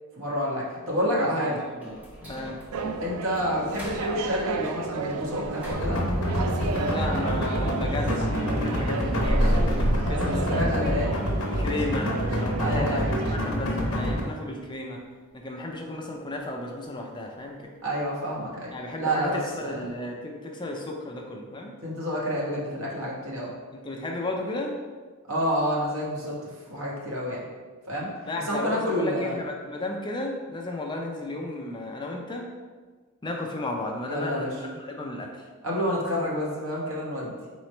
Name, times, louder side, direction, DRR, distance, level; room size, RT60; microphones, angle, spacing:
voice 1, 0.2-1.5 3.0-6.0 10.5-11.1 12.6-13.2 17.8-18.7 19.0-19.8 21.8-23.5 25.3-26.3 26.7-27.4 27.9-28.1 28.5-29.4 34.1-34.6 35.6-37.3, equal, 65° right, -4 dB, 1.2 m, -28 dB
voice 2, 1.0-1.6 1.8-2.0 2.3-2.6 6.9-11.0 11.5-12.1 12.4-15.0 15.3-17.7 18.7-21.7 23.7-24.8 28.3-32.5 33.2-35.4, left 2 dB, 20° left, 1 dB, 0.4 m, -34 dB
sound 1, 1.8-7.7 8.1-11.0 11.3-11.4 11.9-12.0 12.5-12.9 13.2-13.3 13.8-13.9, equal, 5° right, 0.8 m, -32 dB
sound 2, 2.7-13.4, right 4 dB, 85° right, 0.3 m, -33 dB
sound 3, 5.7-14.2, equal, 75° left, 0.8 m, -27 dB
3.9 x 3.1 x 4.3 m, 1.4 s
head